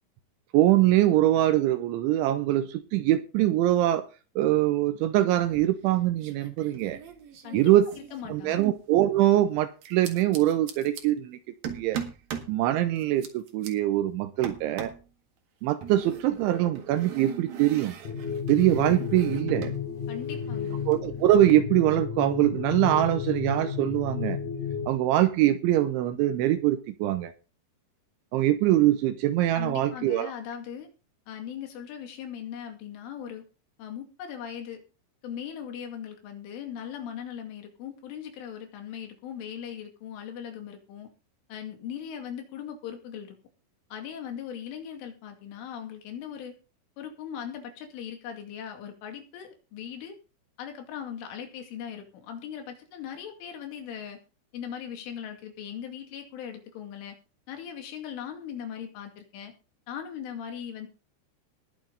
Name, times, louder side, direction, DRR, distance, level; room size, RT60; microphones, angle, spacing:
voice 1, 0.5-4.0 4.4-7.0 7.5-7.9 8.3-11.4 11.7-12.0 12.5-14.9 15.6-17.9 18.5-19.7 20.9-24.4 24.9-27.3 28.3-30.3, right 14 dB, 80° right, 3.1 m, -23 dB
sound 1, 5.4-5.9 6.2-8.8 9.8-11.0 11.6-12.5 13.0-13.7 14.4-15.1 15.8-19.8 20.1-21.4, right 8 dB, 60° right, 3.0 m, -41 dB
voice 2, 8.1-8.7 20.1-20.9 29.5-30.9 31.3-33.4 33.8-34.8 35.2-41.1 41.5-43.4 43.9-46.6 47.0-50.2 50.6-54.2 54.5-57.2 57.5-59.5 59.9-60.9, left 8 dB, 80° left, 4.8 m, -39 dB
sound 2, 18.0-24.9, left 7 dB, 55° left, 2.3 m, -32 dB
20.5 x 7.3 x 3.9 m
omnidirectional pair, 5.6 m